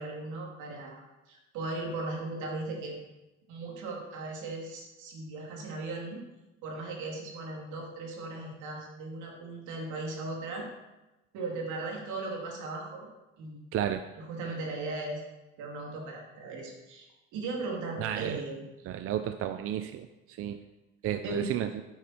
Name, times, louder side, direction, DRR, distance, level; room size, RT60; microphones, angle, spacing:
voice 1, 0.0-3.0 3.5-6.2 6.6-10.7 11.3-13.1 13.4-13.6 14.2-15.2 15.6-17.1 17.3-18.7 21.2-21.5, right 3 dB, 80° right, 0 dB, 2.8 m, -37 dB
voice 2, 13.7-14.0 18.0-18.4 18.8-20.6 21.0-21.8, right 10 dB, 50° right, 9 dB, 0.5 m, -32 dB
9.2 x 8.5 x 4.4 m, 1.0 s
cardioid pair, 155°, 29 cm